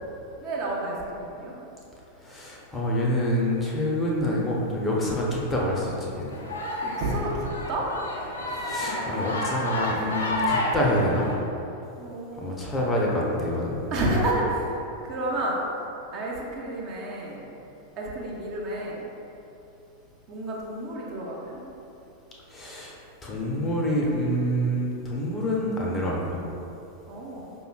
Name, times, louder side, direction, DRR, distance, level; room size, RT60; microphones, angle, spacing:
voice 1, 0.4-1.5 6.8-7.9 8.5-8.7 12.0-12.6 13.9-14.7 15.0-15.6 16.1-17.4 18.0-19.0 20.3-21.6 27.1-27.5, right 1 dB, 40° right, -4 dB, 0.7 m, -30 dB
voice 2, 2.2-6.4 8.6-11.3 12.3-13.8 22.5-22.9 23.2-26.4, equal, 15° left, -4 dB, 0.6 m, -27 dB
sound 1, 6.3-11.4, left 1 dB, 70° left, 0.5 m, -30 dB
5.0 x 3.0 x 2.3 m, 2.9 s
figure-of-eight pair, 90°, 0 cm